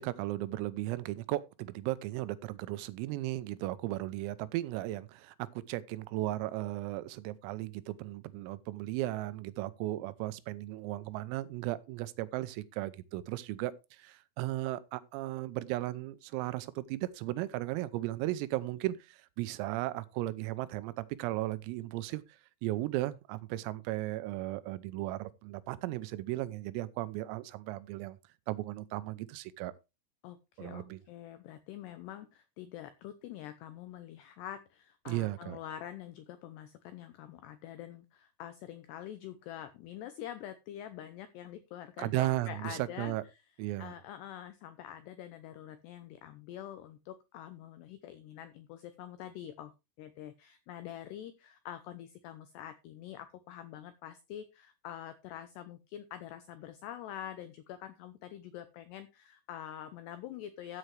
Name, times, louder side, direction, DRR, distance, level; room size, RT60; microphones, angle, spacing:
voice 1, 0.0-22.2 22.6-28.2 28.5-29.7 30.6-31.0 35.1-35.6 42.0-43.2 43.6-43.9, right 16 dB, 85° right, 3.5 m, -36 dB
voice 2, 30.2-43.2 43.8-60.8, left 11 dB, 85° left, 2.4 m, -46 dB
14.0 x 7.9 x 3.3 m
omnidirectional pair, 5.9 m